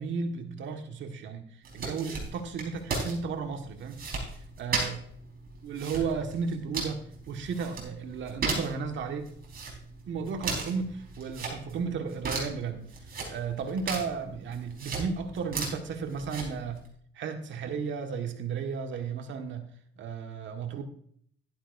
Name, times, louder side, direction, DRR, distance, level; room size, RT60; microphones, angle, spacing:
voice 1, 0.0-1.4 1.7-4.0 4.3-5.0 5.6-9.3 10.1-12.9 13.3-16.8 17.1-19.7 20.0-20.8, right 5 dB, 70° right, 5 dB, 1.6 m, -34 dB
sound 1, 1.6-16.9, right 3 dB, 50° right, 4.5 m, -37 dB
12.0 x 11.0 x 2.6 m, 0.62 s
cardioid pair, 90°, 20 cm